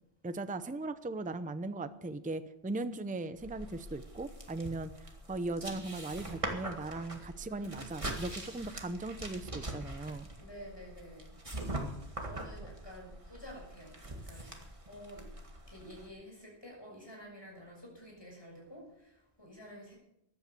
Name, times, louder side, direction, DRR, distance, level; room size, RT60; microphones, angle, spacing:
voice 1, 0.2-10.3, right 2 dB, 10° right, 12 dB, 0.6 m, -38 dB
sound 1, 3.4-16.1, right 1 dB, 30° right, 2.0 m, -43 dB
voice 2, 7.4-7.9 10.4-11.3 12.2-15.3 15.7-20.0, equal, 25° left, -1 dB, 6.6 m, -50 dB
14.5 x 11.0 x 6.8 m, 0.79 s
omnidirectional pair, 1.1 m